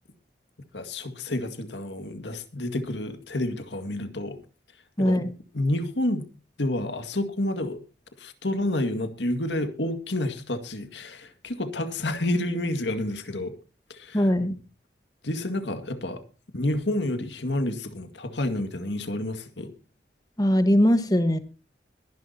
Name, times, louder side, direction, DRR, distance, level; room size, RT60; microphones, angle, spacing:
voice 1, 0.7-4.4 5.0-5.2 5.5-6.3 6.6-7.8 8.2-13.5 13.9-14.3 15.2-16.2 16.5-19.7, left 1 dB, 85° left, 9 dB, 2.0 m, -29 dB
voice 2, 5.0-5.3 14.1-14.5 20.4-21.4, equal, 20° left, 10 dB, 1.4 m, -20 dB
22.0 x 11.0 x 2.8 m, 0.32 s
head